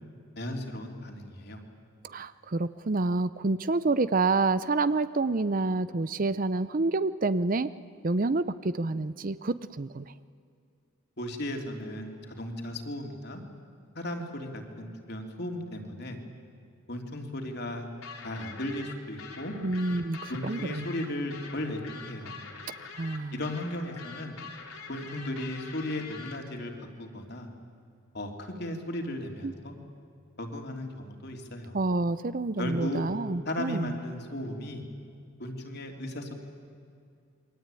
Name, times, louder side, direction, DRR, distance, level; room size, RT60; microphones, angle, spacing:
voice 1, 0.4-1.6 11.2-13.4 13.9-16.2 16.9-17.9 18.2-19.5 20.3-22.4 23.3-24.4 24.9-27.5 28.1-29.7 30.4-31.8 32.6-33.0 33.4-34.8 35.4-36.3, left 1 dB, 50° left, 3 dB, 3.1 m, -36 dB
voice 2, 2.0-7.7 8.0-10.1 19.6-20.9 23.0-23.4 29.4-29.5 31.7-33.9, right 3 dB, 40° right, 14 dB, 0.6 m, -28 dB
sound 1, 18.0-26.4, left 5 dB, 75° left, 3.7 m, -44 dB
28.0 x 23.0 x 9.1 m, 2.4 s
head